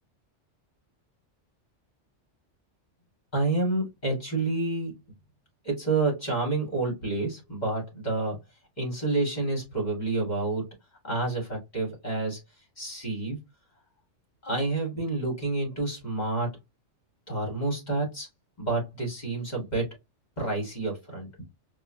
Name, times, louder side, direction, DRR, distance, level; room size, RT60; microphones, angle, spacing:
voice 1, 3.3-4.9 5.6-8.4 8.8-10.7 11.0-12.4 12.8-13.4 14.4-16.5 17.3-18.3 18.6-19.9 20.4-21.3, right 2 dB, 35° left, 0 dB, 2.2 m, -29 dB
4.8 x 2.5 x 2.6 m, 0.20 s
omnidirectional pair, 1.2 m